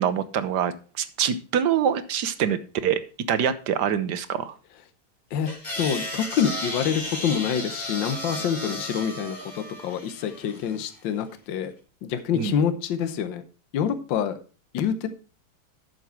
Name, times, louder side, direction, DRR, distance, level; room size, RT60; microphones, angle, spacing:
voice 1, 0.0-3.0 3.3-4.5 12.3-12.5, right 8 dB, 65° right, 12 dB, 1.3 m, -25 dB
sound 1, 5.5-10.8, left 1 dB, 20° left, 2.3 m, -34 dB
voice 2, 5.8-11.7 12.0-13.4 13.7-14.4 14.7-15.1, left 8 dB, 70° left, 10 dB, 1.6 m, -26 dB
10.5 x 6.8 x 4.4 m, 0.36 s
omnidirectional pair, 2.2 m